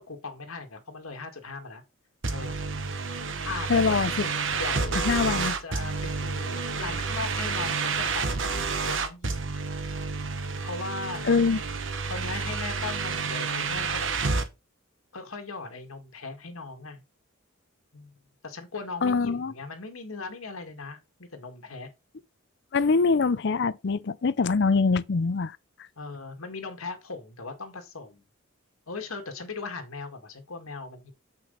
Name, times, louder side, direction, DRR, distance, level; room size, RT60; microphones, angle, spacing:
voice 1, 0.0-1.8 2.3-2.8 3.4-4.1 4.5-5.0 5.4-8.5 8.9-9.5 10.6-11.3 12.1-14.1 15.1-17.0 17.9-18.1 18.4-21.9 26.0-28.2 28.9-31.1, left 4 dB, 85° left, 1.9 m, -38 dB
sound 1, 2.2-14.5, right 4 dB, 60° right, 1.2 m, -30 dB
voice 2, 3.7-4.3 5.0-5.5 11.2-11.6 19.0-19.5 22.7-25.6, left 4 dB, 55° left, 0.5 m, -23 dB
7.7 x 6.0 x 4.0 m
head